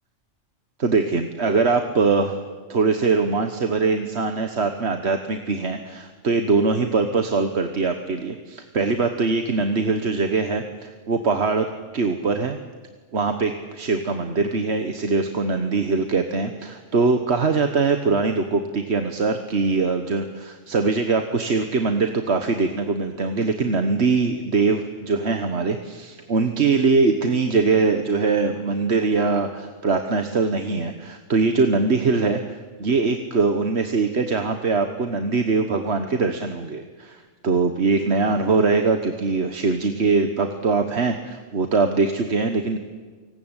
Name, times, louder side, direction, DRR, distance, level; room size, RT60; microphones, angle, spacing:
voice 1, 0.8-2.4 2.7-11.7 11.9-12.6 13.1-42.8, right 4 dB, 55° right, 6 dB, 1.6 m, -22 dB
29.5 x 19.5 x 9.0 m, 1.4 s
omnidirectional pair, 1.3 m